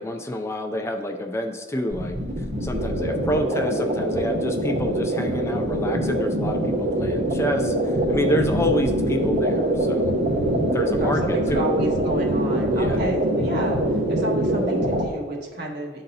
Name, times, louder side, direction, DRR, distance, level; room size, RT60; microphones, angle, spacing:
voice 1, 0.0-10.1 10.7-11.7 12.7-13.0, left 1 dB, 15° left, 4 dB, 0.3 m, -28 dB
sound 1, 1.9-15.0, right 1 dB, 40° right, 0.8 m, -24 dB
voice 2, 11.0-13.8 14.1-16.0, right 1 dB, 60° right, -2 dB, 1.3 m, -30 dB
11.5 x 3.9 x 2.7 m, 1.4 s
head